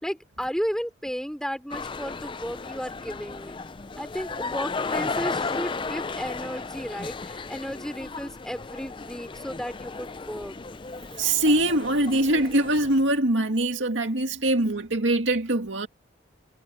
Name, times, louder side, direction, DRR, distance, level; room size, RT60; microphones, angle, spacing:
voice 1, 0.0-3.5 4.0-10.6, equal, 5° left, 4.3 m, -34 dB
sound 1, 1.7-13.0, left 4 dB, 25° left, 0.5 m, -34 dB
voice 2, 11.2-15.9, right 1 dB, 70° right, 2.2 m, -23 dB
head